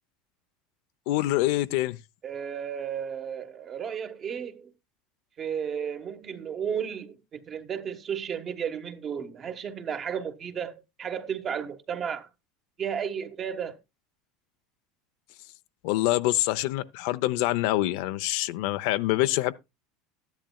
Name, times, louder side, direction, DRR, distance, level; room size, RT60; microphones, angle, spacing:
voice 1, 1.1-2.0 15.8-19.5, left 16 dB, 70° left, 0.6 m, -25 dB
voice 2, 2.2-4.7 5.4-12.3 12.8-13.7, right 7 dB, 30° right, 1.3 m, -33 dB
13.0 x 10.5 x 2.3 m
supercardioid pair, 130°, 0 cm